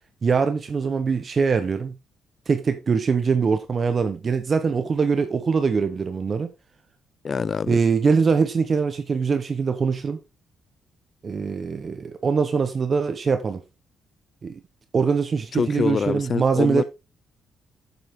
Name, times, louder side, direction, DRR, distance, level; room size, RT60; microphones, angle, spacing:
voice 1, 0.2-2.0 2.5-6.5 7.7-10.2 11.2-13.6 14.4-14.6 14.9-16.8, right 5 dB, 40° right, 1.0 m, -22 dB
voice 2, 7.2-7.8 15.5-16.8, left 5 dB, 40° left, 0.5 m, -25 dB
8.3 x 7.4 x 3.8 m
cardioid pair, 90°, 0 cm